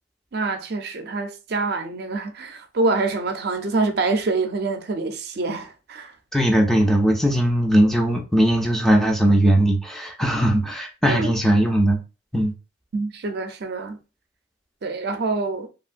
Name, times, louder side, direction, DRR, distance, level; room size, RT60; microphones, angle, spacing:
voice 1, 0.3-6.1 11.1-11.3 12.9-14.0 14.8-15.7, right 3 dB, 55° right, 0.5 m, -26 dB
voice 2, 6.3-12.0 12.3-12.5, right 1 dB, ahead, 0.4 m, -19 dB
2.9 x 2.6 x 2.4 m
head